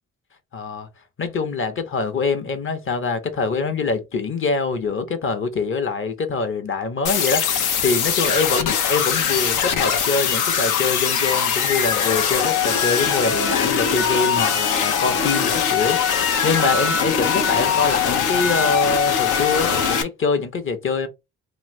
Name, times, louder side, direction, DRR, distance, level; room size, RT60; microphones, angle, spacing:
voice 1, 0.5-0.9 1.2-21.1, left 4 dB, 45° left, 0.9 m, -24 dB
sound 1, 7.0-20.0, left 7 dB, 85° left, 0.7 m, -21 dB
3.0 x 2.6 x 3.1 m
cardioid pair, 90°, 30 cm